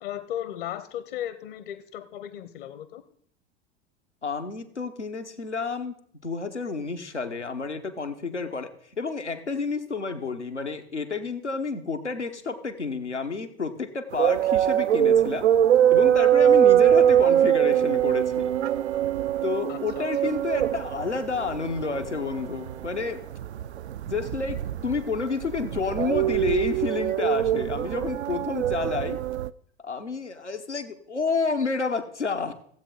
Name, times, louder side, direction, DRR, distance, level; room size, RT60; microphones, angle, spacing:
voice 1, 0.0-3.0 19.7-20.1, left 11 dB, 50° left, 14 dB, 0.8 m, -36 dB
voice 2, 4.2-5.9 6.2-15.5 15.9-18.5 19.4-23.2 24.1-29.2 29.8-32.5, left 4 dB, 85° left, 6 dB, 1.0 m, -30 dB
sound 1, 14.1-29.5, right 10 dB, 70° right, 0.5 m, -22 dB
sound 2, 16.5-23.2, right 10 dB, 20° right, 0.5 m, -41 dB
15.5 x 8.1 x 3.8 m, 0.63 s
figure-of-eight pair, 85°, 34 cm